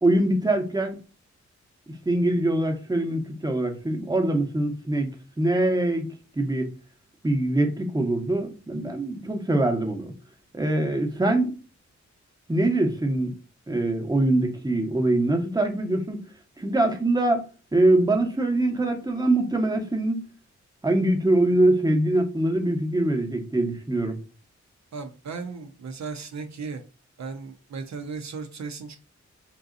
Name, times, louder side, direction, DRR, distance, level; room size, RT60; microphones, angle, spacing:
voice 1, 0.0-1.0 2.1-5.1 5.4-6.0 6.4-6.7 7.2-10.1 10.5-11.6 12.5-13.3 13.7-16.2 16.6-17.4 17.7-20.2 20.8-24.2, right 1 dB, 15° right, 0.8 m, -23 dB
voice 2, 24.9-26.8 27.2-29.0, right 4 dB, 70° right, 0.6 m, -36 dB
3.7 x 2.7 x 2.4 m
cardioid pair, 65°, 29 cm